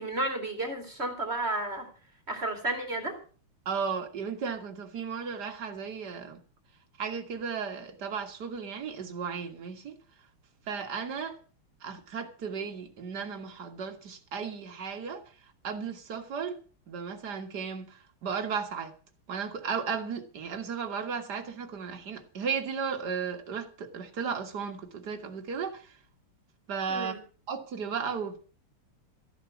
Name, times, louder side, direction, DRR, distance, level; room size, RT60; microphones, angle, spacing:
voice 1, 0.0-1.9 2.3-3.2 26.9-27.2, right 2 dB, 30° right, 2.8 m, -32 dB
voice 2, 3.7-6.4 7.0-10.0 10.7-11.4 11.8-15.2 15.6-16.6 16.9-18.9 19.3-25.9 26.7-27.2 27.5-28.4, right 6 dB, 50° right, 2.2 m, -35 dB
13.5 x 11.0 x 5.9 m
omnidirectional pair, 2.4 m